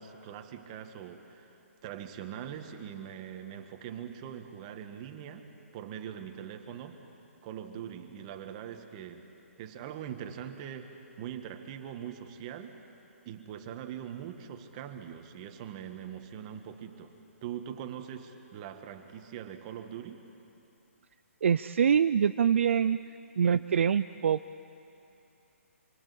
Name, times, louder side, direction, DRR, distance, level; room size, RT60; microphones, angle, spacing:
voice 1, 0.0-7.0 7.4-9.3 9.6-12.8 13.2-17.1 17.4-20.3, right 9 dB, 25° right, 6 dB, 1.7 m, -42 dB
voice 2, 21.4-23.0 23.4-24.6, right 7 dB, 55° right, 11 dB, 0.5 m, -25 dB
27.0 x 24.0 x 8.6 m, 2.9 s
hypercardioid pair, 165°, 8 cm